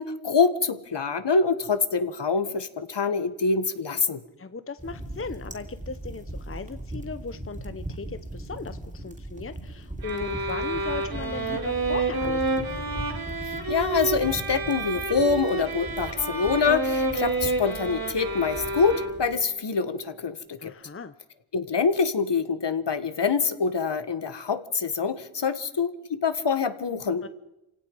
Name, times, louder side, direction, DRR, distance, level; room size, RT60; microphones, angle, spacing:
voice 1, 0.0-4.2 13.7-20.7 21.5-27.2, left 5 dB, 55° left, 11 dB, 1.6 m, -25 dB
voice 2, 4.4-12.7 20.6-21.1 27.2-27.3, left 4 dB, 25° left, 12 dB, 0.9 m, -37 dB
sound 1, 4.8-19.4, right 1 dB, 15° right, 3.0 m, -39 dB
sound 2, 10.0-19.5, right 3 dB, 45° right, 2.9 m, -29 dB
27.5 x 17.0 x 5.5 m, 0.90 s
cardioid pair, 65°, 50 cm